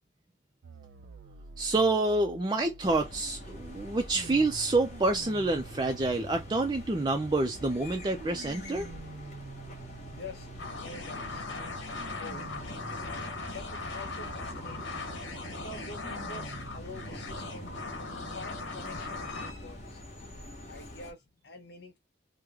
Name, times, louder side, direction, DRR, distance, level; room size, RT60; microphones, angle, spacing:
sound 1, 0.6-18.6, right 4 dB, 90° right, 0.5 m, -48 dB
voice 1, 1.6-8.9, right 2 dB, 25° right, 0.4 m, -28 dB
sound 2, 2.8-21.1, left 1 dB, 40° left, 1.1 m, -46 dB
voice 2, 10.1-12.5 13.0-20.2 20.6-22.0, left 3 dB, 60° left, 0.8 m, -47 dB
sound 3, 10.6-19.5, left 3 dB, 85° left, 1.2 m, -39 dB
3.0 x 2.2 x 3.5 m
head